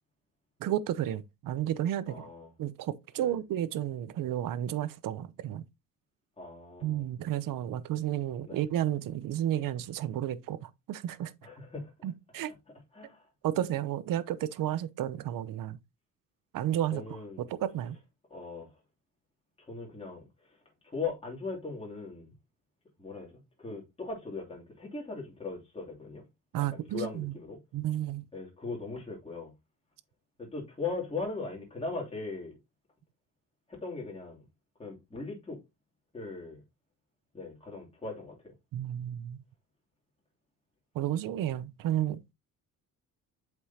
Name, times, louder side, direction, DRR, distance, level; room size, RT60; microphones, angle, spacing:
voice 1, 0.6-2.3 2.6-5.7 6.8-11.3 12.0-12.5 13.4-15.8 16.5-18.0 26.5-27.3 27.7-28.3 38.7-39.4 40.9-42.2, right 12 dB, 75° right, 0.8 m, -32 dB
voice 2, 2.1-2.5 3.2-3.3 6.4-7.1 8.5-8.6 11.4-11.9 12.9-13.2 16.9-17.4 18.3-18.7 19.6-20.3 20.8-22.3 23.0-26.2 26.6-27.6 28.3-29.5 30.4-32.6 33.7-34.5 34.8-35.6 36.1-36.6 37.3-38.5, left 4 dB, 15° left, 2.9 m, -39 dB
7.9 x 5.4 x 2.8 m
cardioid pair, 110°, 34 cm